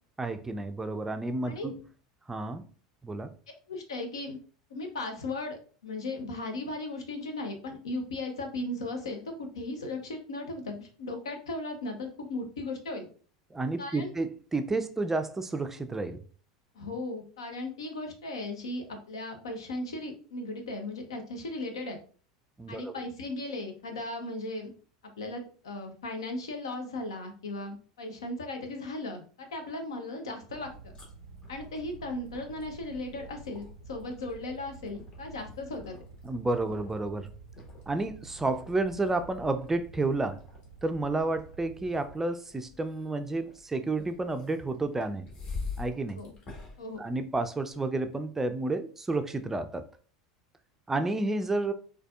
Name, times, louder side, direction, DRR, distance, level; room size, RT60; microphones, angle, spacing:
voice 1, 0.2-1.8 2.3-2.6 3.0-3.3 13.5-16.2 22.6-22.9 36.2-37.3 37.9-40.4 40.8-45.3 45.8-46.2 47.0-49.8 50.9-51.7, right 2 dB, 15° right, 0.4 m, -31 dB
voice 2, 3.7-4.4 4.7-13.1 13.8-14.1 16.7-22.0 22.7-24.7 25.2-30.7 31.5-36.0 46.2-46.3 46.8-47.0, left 2 dB, 80° left, 0.7 m, -37 dB
sound 1, 30.5-42.1, right 4 dB, 90° right, 0.4 m, -50 dB
sound 2, 30.6-47.8, left 4 dB, 40° left, 1.3 m, -47 dB
4.1 x 2.5 x 2.3 m
hypercardioid pair, 85°, 3 cm